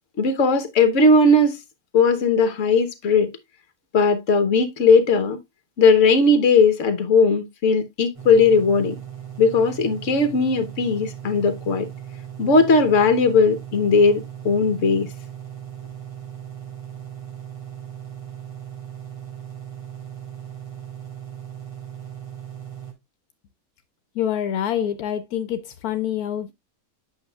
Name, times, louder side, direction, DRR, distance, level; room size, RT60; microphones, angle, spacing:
voice 1, 0.2-1.6 1.9-3.3 3.9-5.4 5.8-9.0 9.4-11.9 12.4-15.1, left 3 dB, 60° left, 1.4 m, -18 dB
sound 1, 8.1-22.9, right 10 dB, 20° right, 1.7 m, -38 dB
voice 2, 24.1-26.5, left 10 dB, 80° left, 1.2 m, -26 dB
8.7 x 6.3 x 2.3 m
omnidirectional pair, 1.6 m